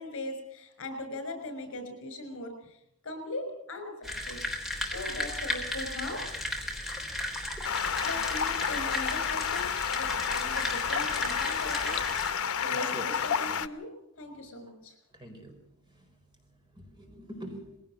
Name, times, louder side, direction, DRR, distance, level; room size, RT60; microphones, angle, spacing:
voice 1, 0.0-2.8 3.0-4.4 4.8-6.2 8.0-12.0 12.6-13.9 14.2-14.9, left 2 dB, 65° left, 8 dB, 6.0 m, -39 dB
sound 1, 4.0-12.3, left 1 dB, ahead, 3.6 m, -35 dB
Stream, 7.6-13.7, left 7 dB, 80° left, 0.9 m, -30 dB
voice 2, 12.7-13.0 13.4-13.6 15.1-15.6 15.9-16.0 16.7-17.8, equal, 20° right, 3 dB, 4.5 m, -44 dB
21.0 x 17.0 x 7.5 m, 0.78 s
head